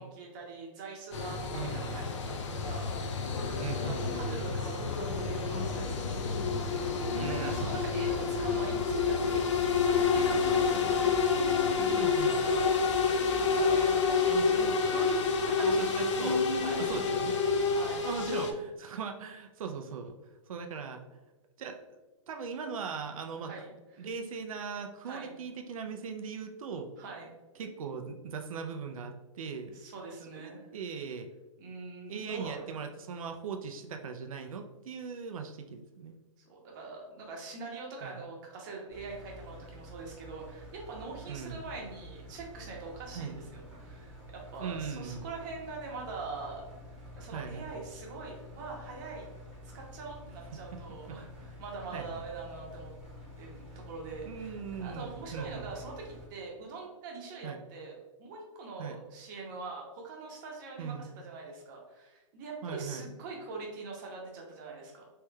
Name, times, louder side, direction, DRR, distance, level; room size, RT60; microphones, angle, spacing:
voice 1, 0.0-6.3 6.5-6.7 7.1-11.0 11.5-13.2 13.5-14.0 16.6-16.9 17.7-18.0 23.4-24.1 25.0-25.3 27.0-27.3 29.7-30.7 31.6-32.8 36.5-49.3 49.6-52.9 53.4-65.0, right 4 dB, 35° right, -1 dB, 0.8 m, -43 dB
sound 1, 1.1-18.5, left 5 dB, 60° left, 0.6 m, -28 dB
voice 2, 1.5-1.9 3.6-4.1 7.1-7.8 11.9-12.3 13.9-17.4 18.0-20.2 20.5-21.0 21.6-21.8 22.3-23.5 24.0-26.9 27.6-29.8 30.4-31.3 32.1-36.1 38.0-38.2 41.3-41.7 43.1-43.4 44.6-45.3 47.3-47.7 50.9-51.2 51.9-52.2 54.2-55.7 57.4-57.6 58.8-59.0 60.8-61.1 62.6-63.0, right 6 dB, 85° right, 5 dB, 0.4 m, -39 dB
Engine, 38.9-56.3, left 1 dB, 5° right, 1.1 m, -49 dB
3.3 x 3.2 x 2.2 m, 1.1 s
hypercardioid pair, 160°, 17 cm